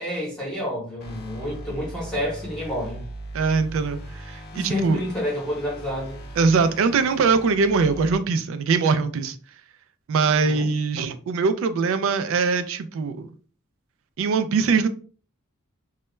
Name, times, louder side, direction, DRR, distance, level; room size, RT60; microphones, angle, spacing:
voice 1, 0.0-3.0 4.5-6.2 10.2-10.7, left 1 dB, 5° left, 0.8 m, -29 dB
sound 1, 1.0-8.1, right 1 dB, 50° left, 0.4 m, -39 dB
voice 2, 3.3-5.0 6.4-9.4 10.1-13.3 14.2-14.9, right 4 dB, 65° right, 0.3 m, -22 dB
2.2 x 2.0 x 3.0 m
head